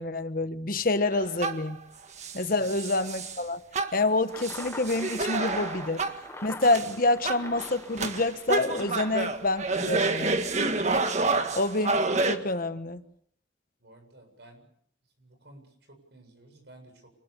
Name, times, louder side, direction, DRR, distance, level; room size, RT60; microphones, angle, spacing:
voice 1, 0.0-1.8 2.3-3.6 3.9-6.0 6.4-10.4 11.5-13.0, left 2 dB, 50° left, 10 dB, 1.3 m, -27 dB
sound 1, 1.1-1.8 2.2-3.4 3.7-6.3 6.6-6.9 7.2-12.4, right 3 dB, 40° right, 1.7 m, -29 dB
sound 2, 4.3-10.1, left 2 dB, 15° left, 1.3 m, -44 dB
voice 2, 13.8-14.7 15.2-17.1, right 1 dB, 65° right, 4 dB, 7.8 m, -54 dB
27.5 x 20.5 x 7.0 m, 0.64 s
head